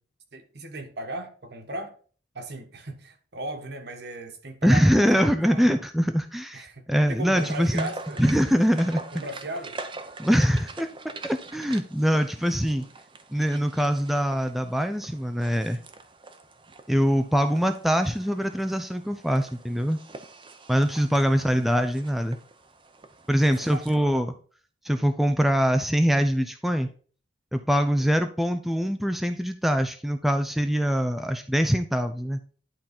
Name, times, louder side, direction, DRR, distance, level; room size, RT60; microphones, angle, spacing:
voice 1, 0.3-1.9 2.3-5.7 6.5-8.2 9.1-9.8 23.4-24.0 28.0-28.2, right 1 dB, 65° right, 1.4 m, -37 dB
voice 2, 4.6-7.9 8.2-9.0 10.2-10.9 11.2-12.8 13.3-15.8 16.9-20.0 20.7-22.4 23.3-24.3 24.8-26.9 27.5-32.4, equal, ahead, 0.5 m, -23 dB
sound 1, 7.4-24.0, right 3 dB, 30° right, 0.8 m, -44 dB
11.0 x 3.9 x 4.3 m
head